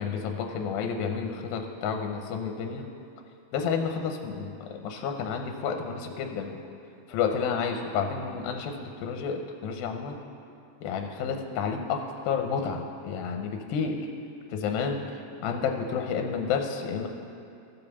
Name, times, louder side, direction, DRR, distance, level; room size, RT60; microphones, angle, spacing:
voice 1, 0.0-2.8 3.5-6.6 7.1-10.2 10.8-14.0 14.5-15.0 15.4-17.1, left 6 dB, 80° left, 4 dB, 2.4 m, -30 dB
16.0 x 5.3 x 6.9 m, 2.5 s
omnidirectional pair, 4.3 m